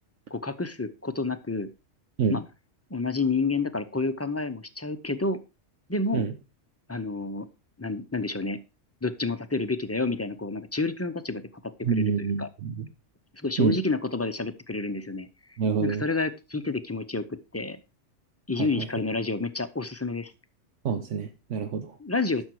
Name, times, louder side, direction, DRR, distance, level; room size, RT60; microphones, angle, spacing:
voice 1, 0.3-1.7 2.3-2.4 2.9-5.4 5.9-6.2 6.9-7.5 7.8-8.6 9.0-12.0 12.4-12.5 13.3-15.3 15.8-17.8 18.5-20.3 22.0-22.4, left 3 dB, 15° left, 11 dB, 0.5 m, -29 dB
voice 2, 11.8-12.9 13.6-13.8 15.6-16.0 18.6-18.9 20.8-22.0, right 6 dB, 80° right, 7 dB, 1.3 m, -27 dB
12.0 x 6.3 x 4.6 m, 0.28 s
omnidirectional pair, 1.3 m